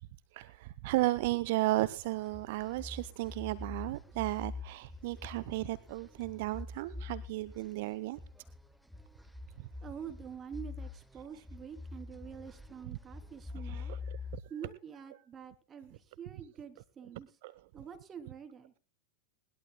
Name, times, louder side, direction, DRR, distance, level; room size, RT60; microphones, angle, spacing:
voice 1, 0.3-8.2 9.6-9.7 13.6-14.4 17.4-17.6, right 18 dB, 50° right, 16 dB, 0.7 m, -34 dB
sound 1, 2.1-14.4, left 3 dB, ahead, 1.0 m, -45 dB
voice 2, 9.8-14.0 14.5-17.3 17.7-18.7, right 7 dB, 25° right, 8 dB, 3.1 m, -47 dB
20.5 x 20.0 x 2.2 m, 0.37 s
figure-of-eight pair, 90°, 0 cm